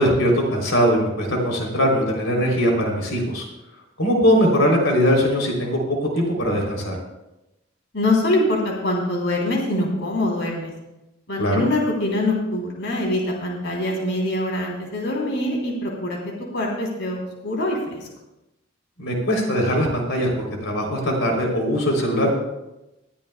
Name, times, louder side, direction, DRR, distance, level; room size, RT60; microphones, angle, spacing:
voice 1, 0.0-3.4 4.0-6.9 11.4-11.6 19.0-22.3, equal, 90° left, 0 dB, 3.2 m, -21 dB
voice 2, 7.9-10.7 11.3-16.2 16.5-18.0, left 1 dB, 65° left, -1 dB, 3.3 m, -24 dB
20.0 x 14.0 x 2.3 m, 0.95 s
head